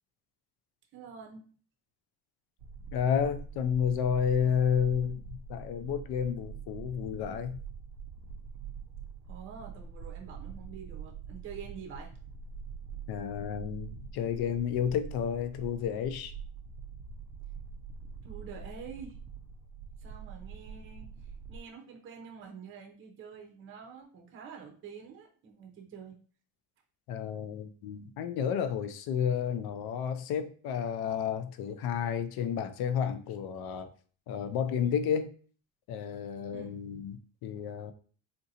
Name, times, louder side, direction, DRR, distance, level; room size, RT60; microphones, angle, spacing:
voice 1, 0.9-1.5 9.3-12.1 18.2-19.2 20.0-21.2 21.5-26.2 36.5-37.0, right 6 dB, 30° right, 1 dB, 0.6 m, -47 dB
sound 1, 2.6-21.6, right 5 dB, 75° right, 0.5 m, -44 dB
voice 2, 2.9-7.6 13.1-16.3 27.1-33.9 34.3-35.3 35.9-37.9, left 8 dB, 70° left, 10 dB, 0.5 m, -31 dB
3.7 x 2.6 x 2.7 m, 0.43 s
cardioid pair, 165°, 39 cm